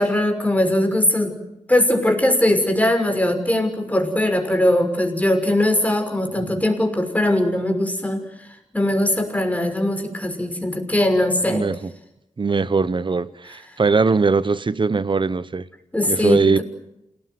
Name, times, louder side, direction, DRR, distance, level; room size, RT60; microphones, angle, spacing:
voice 1, 0.0-1.4 1.7-8.3 8.7-11.6 15.9-16.6, left 1 dB, 10° left, 6.1 m, -20 dB
voice 2, 11.5-11.9 12.4-15.7 16.1-16.6, right 4 dB, 45° right, 1.1 m, -20 dB
28.0 x 19.0 x 9.5 m
wide cardioid pair, 75°, 12 cm